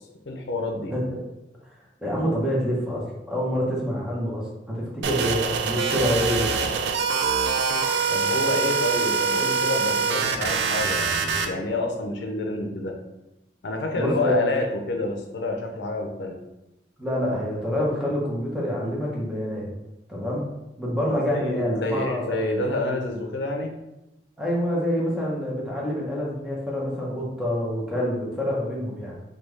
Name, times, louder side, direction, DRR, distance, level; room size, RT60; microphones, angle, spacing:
voice 1, 0.2-0.9 8.1-12.9 13.6-16.4 21.3-23.7, left 2 dB, 85° left, 2 dB, 0.5 m, -28 dB
voice 2, 2.0-6.5 13.9-14.4 17.0-19.7 20.1-20.5 20.8-22.4 24.4-29.1, equal, 5° right, -5 dB, 0.8 m, -26 dB
sound 1, 5.0-11.5, right 5 dB, 75° right, 0.4 m, -24 dB
3.5 x 2.3 x 3.1 m, 0.94 s
head